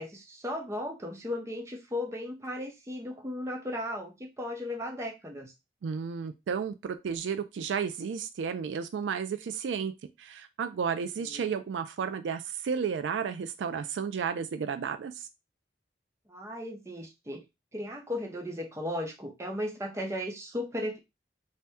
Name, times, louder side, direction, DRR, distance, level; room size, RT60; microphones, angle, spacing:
voice 1, 0.0-5.5 11.2-11.4 16.3-17.4 17.7-21.0, left 1 dB, 15° right, 1 dB, 0.6 m, -36 dB
voice 2, 5.8-9.9 10.2-15.3, right 6 dB, 80° right, 10 dB, 0.3 m, -32 dB
2.7 x 2.1 x 3.4 m, 0.23 s
head